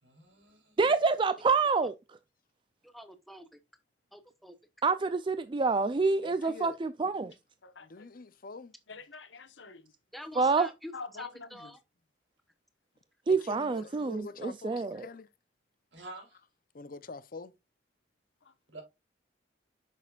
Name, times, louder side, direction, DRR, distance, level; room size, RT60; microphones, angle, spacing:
voice 1, 0.0-0.7 15.9-16.4 18.7-18.8, right 2 dB, 80° right, 4.2 m, -48 dB
voice 2, 0.8-1.9 4.8-7.3 10.4-10.7 13.3-15.1, right 4 dB, 25° right, 0.4 m, -27 dB
voice 3, 2.8-3.6 4.1-4.6 10.1-10.9 11.2-11.8, equal, ahead, 0.9 m, -47 dB
voice 4, 6.2-6.8 7.8-8.7 13.3-15.3 16.7-17.5, left 3 dB, 50° left, 0.7 m, -45 dB
voice 5, 7.6-8.1 8.9-9.9 10.9-11.7 18.4-18.5, left 4 dB, 80° left, 1.2 m, -46 dB
9.4 x 6.5 x 2.4 m
head